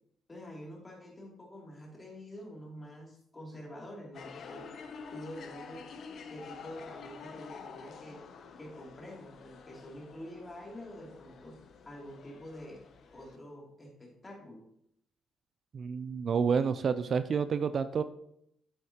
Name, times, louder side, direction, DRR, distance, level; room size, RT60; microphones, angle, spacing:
voice 1, 0.3-4.6 5.1-5.8 6.3-8.2 8.6-11.6 11.8-12.8 13.1-14.6, equal, 20° left, -1 dB, 2.8 m, -47 dB
sound 1, 4.1-13.4, left 5 dB, 60° left, 0.7 m, -49 dB
voice 2, 15.7-18.0, right 6 dB, 50° right, 12 dB, 0.4 m, -29 dB
8.2 x 7.9 x 2.9 m, 0.72 s
cardioid pair, 90°, 0 cm